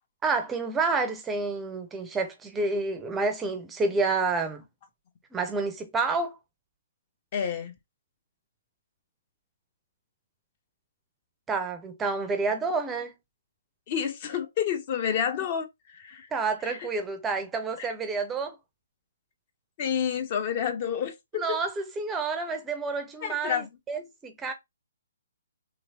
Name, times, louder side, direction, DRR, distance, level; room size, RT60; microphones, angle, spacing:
voice 1, 0.2-4.6 5.3-6.4 11.5-13.1 16.3-18.6 21.4-24.5, right 4 dB, 10° right, 0.5 m, -29 dB
voice 2, 7.3-7.7 13.9-16.3 16.6-16.8 17.8-17.9 19.8-21.6 23.2-23.7, left 8 dB, 40° left, 0.7 m, -29 dB
3.1 x 2.9 x 2.6 m
figure-of-eight pair, 135°, 0 cm